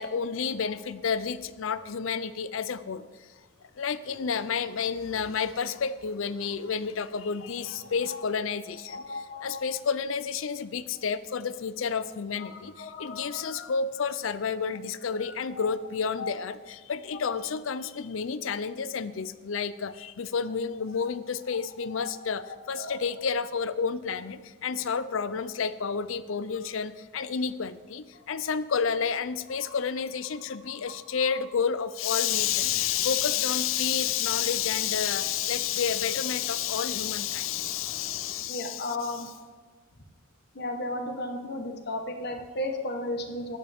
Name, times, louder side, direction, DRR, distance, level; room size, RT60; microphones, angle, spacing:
voice 1, 0.0-3.1 3.8-9.0 9.4-39.2, left 7 dB, 70° left, 15 dB, 0.5 m, -30 dB
voice 2, 7.7-8.2 8.9-9.7 12.4-13.7 15.1-15.7 16.2-16.3 17.3-17.4 21.8-22.1 22.4-23.0 28.3-28.4 29.6-29.7 30.6-31.4 38.5-39.3 40.5-43.6, left 2 dB, 55° left, 5 dB, 1.3 m, -36 dB
sound 1, 32.3-38.4, left 1 dB, 30° left, 2.5 m, -49 dB
15.0 x 11.0 x 3.6 m, 1.5 s
head